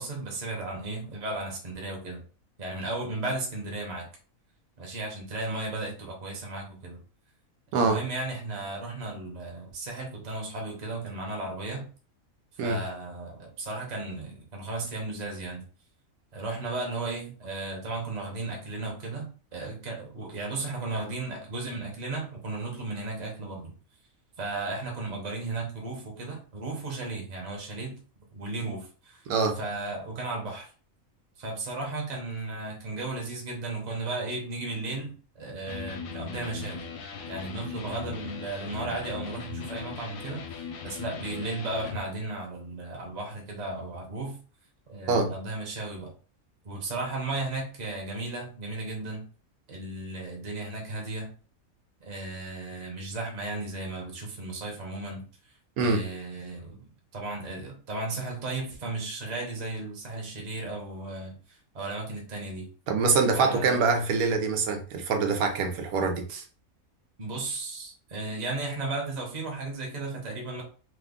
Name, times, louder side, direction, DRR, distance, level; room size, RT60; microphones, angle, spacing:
voice 1, 0.0-2.2 2.6-4.1 4.8-7.0 7.7-11.9 12.6-15.6 16.3-23.7 24.4-28.0 28.3-29.2 29.6-30.7 31.4-36.9 37.3-40.4 40.8-44.4 44.9-46.1 46.6-49.2 49.7-51.3 52.0-55.2 55.8-61.4 61.7-62.7 63.3-63.9 67.2-70.6, right 2 dB, 35° right, 0 dB, 0.9 m, -35 dB
voice 2, 29.3-29.6 45.1-45.3 55.8-56.1 62.9-66.4, right 4 dB, 85° right, 5 dB, 1.2 m, -25 dB
Electric guitar, 35.6-42.1, left 6 dB, 75° left, 1.1 m, -39 dB
2.9 x 2.3 x 3.5 m, 0.38 s
omnidirectional pair, 1.5 m